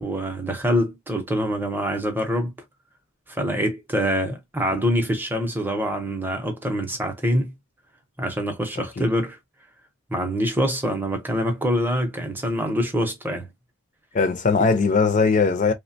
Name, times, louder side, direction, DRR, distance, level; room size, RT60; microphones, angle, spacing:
voice 1, 0.0-2.5 3.3-7.5 8.2-9.4 10.1-13.5, equal, 10° right, 0.6 m, -25 dB
voice 2, 8.8-9.1 14.1-15.7, left 4 dB, 35° left, 0.4 m, -20 dB
3.1 x 2.1 x 2.5 m
head